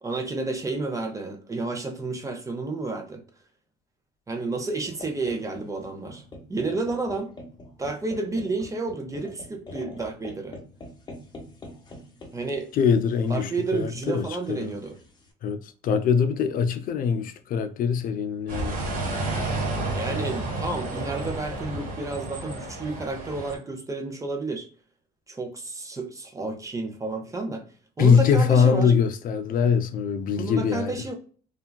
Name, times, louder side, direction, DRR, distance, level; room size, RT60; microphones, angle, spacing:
voice 1, 0.0-3.2 4.3-6.2 6.5-7.3 7.8-10.6 12.3-12.7 13.3-15.0 19.9-24.7 25.3-27.7 28.0-28.9 30.3-31.1, right 3 dB, 20° right, 0.6 m, -31 dB
sound 1, 4.8-15.3, left 1 dB, 25° left, 0.8 m, -46 dB
voice 2, 12.7-14.7 15.4-18.8 28.0-31.0, left 6 dB, 55° left, 0.4 m, -23 dB
sound 2, 18.5-23.6, right 2 dB, 55° right, 1.3 m, -31 dB
3.3 x 2.2 x 2.2 m
cardioid pair, 110°, 17 cm